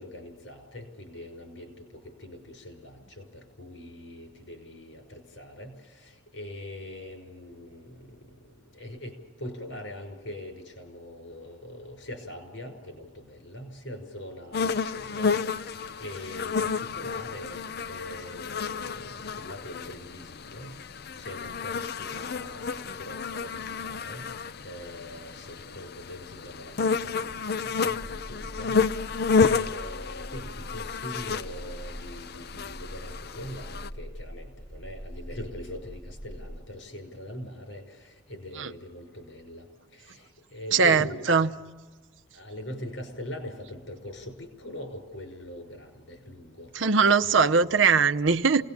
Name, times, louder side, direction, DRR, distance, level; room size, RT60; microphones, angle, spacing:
voice 1, 0.0-8.2 8.7-15.3 16.0-20.7 21.2-24.2 24.6-28.8 29.5-39.6 39.9-41.5 42.3-46.7 47.4-47.7, left 1 dB, 85° left, 5.8 m, -42 dB
sound 1, 14.5-33.9, left 5 dB, 55° left, 0.6 m, -31 dB
sound 2, 27.9-36.6, equal, 15° left, 3.8 m, -42 dB
voice 2, 40.7-41.5 46.7-48.6, right 5 dB, 85° right, 0.8 m, -21 dB
28.5 x 19.0 x 7.3 m
head